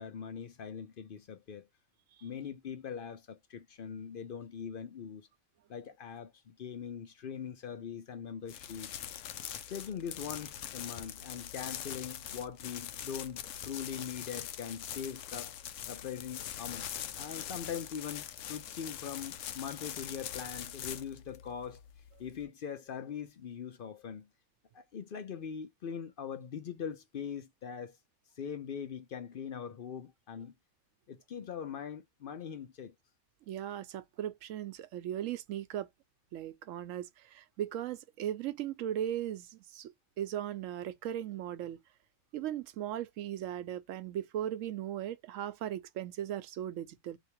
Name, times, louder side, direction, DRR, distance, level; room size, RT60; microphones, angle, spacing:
voice 1, 0.0-1.7 2.2-5.3 5.7-8.9 9.7-15.5 15.9-16.9 17.2-21.8 22.2-24.3 24.7-28.0 28.4-30.5 31.1-32.9, left 7 dB, 55° left, 0.7 m, -42 dB
sound 1, 8.5-22.4, left 10 dB, 85° left, 1.0 m, -43 dB
voice 2, 33.5-35.9 36.3-41.8 42.3-47.2, right 11 dB, 85° right, 1.0 m, -38 dB
3.3 x 2.8 x 2.9 m
omnidirectional pair, 1.3 m